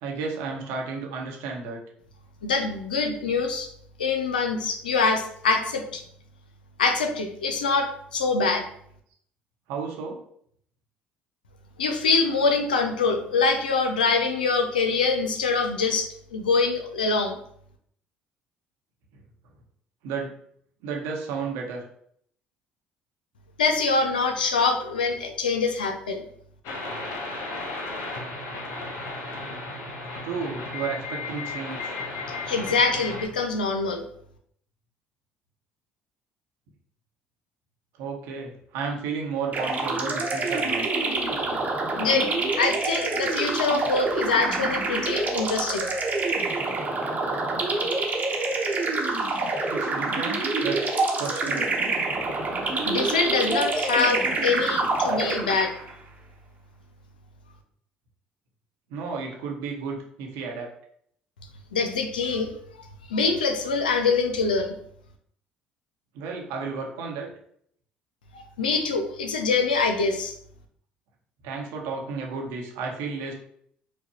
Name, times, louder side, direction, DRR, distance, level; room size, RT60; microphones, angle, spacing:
voice 1, 0.0-1.8 9.7-10.2 20.0-20.3 20.8-21.8 30.2-32.0 38.0-40.9 49.7-51.7 58.9-60.7 66.1-67.3 71.4-73.3, right 5 dB, 70° right, 0 dB, 0.9 m, -33 dB
voice 2, 2.4-3.7 4.0-6.0 6.8-8.7 11.8-17.4 23.6-26.2 32.5-34.0 42.0-42.3 42.6-45.9 52.8-55.7 61.7-62.5 62.8-64.7 68.6-70.3, left 4 dB, 90° left, 5 dB, 0.5 m, -24 dB
sound 1, 26.6-33.3, left 3 dB, 70° left, 0.9 m, -34 dB
sound 2, 39.5-55.9, right 3 dB, 35° right, 0.9 m, -26 dB
4.6 x 2.2 x 2.9 m, 0.66 s
hypercardioid pair, 60°, 5 cm